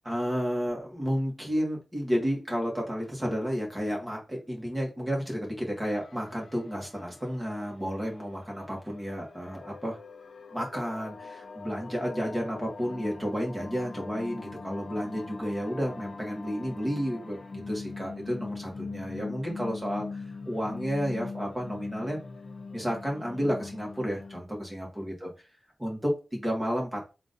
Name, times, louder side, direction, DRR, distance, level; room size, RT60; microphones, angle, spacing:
voice 1, 0.0-10.0 10.5-22.2 22.7-25.3 25.8-27.0, equal, 15° right, -1 dB, 1.7 m, -31 dB
sound 1, 5.9-24.4, left 4 dB, 65° left, 0.7 m, -42 dB
3.7 x 2.6 x 3.8 m, 0.30 s
wide cardioid pair, 90°, 0 cm